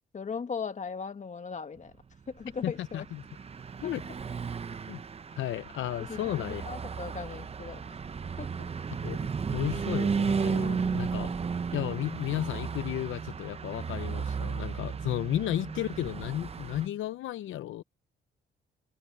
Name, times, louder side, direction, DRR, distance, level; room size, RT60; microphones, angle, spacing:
voice 1, 0.1-1.9 2.3-3.1 3.8-3.9 6.1-7.8 8.4-8.5 10.8-10.9, left 5 dB, 35° left, 1.8 m, -38 dB
Car passing by / Truck, 2.5-16.9, right 5 dB, 30° right, 0.8 m, -34 dB
voice 2, 2.6-3.2 3.8-4.0 4.9-5.0 5.4-6.7 8.9-11.3 11.7-17.8, left 13 dB, 80° left, 0.8 m, -33 dB
cardioid pair, 90°, 20 cm